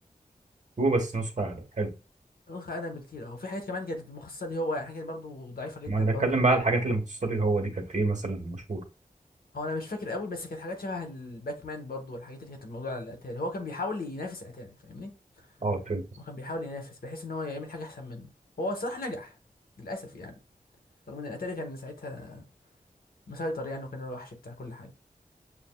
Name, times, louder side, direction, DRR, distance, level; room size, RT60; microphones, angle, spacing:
voice 1, 0.8-1.9 5.9-8.8 15.6-16.0, right 3 dB, 55° right, 1.1 m, -27 dB
voice 2, 2.5-6.4 9.5-15.1 16.2-18.3 18.6-19.4 19.8-20.3 21.1-22.4 23.3-24.9, left 2 dB, 80° left, 1.0 m, -36 dB
6.9 x 2.5 x 2.2 m
wide cardioid pair, 65°, 15 cm